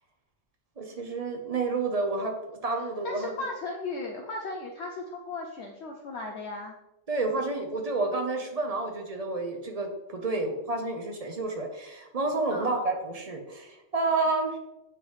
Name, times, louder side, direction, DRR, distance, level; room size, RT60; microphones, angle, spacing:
voice 1, 0.8-3.3 7.1-14.5, right 3 dB, 35° right, 3 dB, 0.7 m, -30 dB
voice 2, 2.8-6.7 12.5-12.8, left 3 dB, 65° left, 2 dB, 0.8 m, -36 dB
8.6 x 3.7 x 3.1 m, 0.93 s
omnidirectional pair, 1.4 m